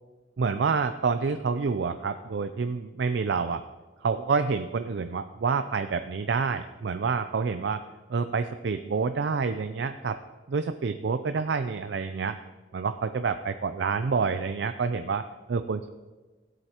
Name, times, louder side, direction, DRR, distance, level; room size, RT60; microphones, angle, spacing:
voice 1, 0.4-3.6 4.0-7.8 8.1-10.2 10.5-12.4 12.7-15.2 15.5-15.9, right 5 dB, 70° right, 9 dB, 0.4 m, -28 dB
16.0 x 8.0 x 2.9 m, 1.2 s
head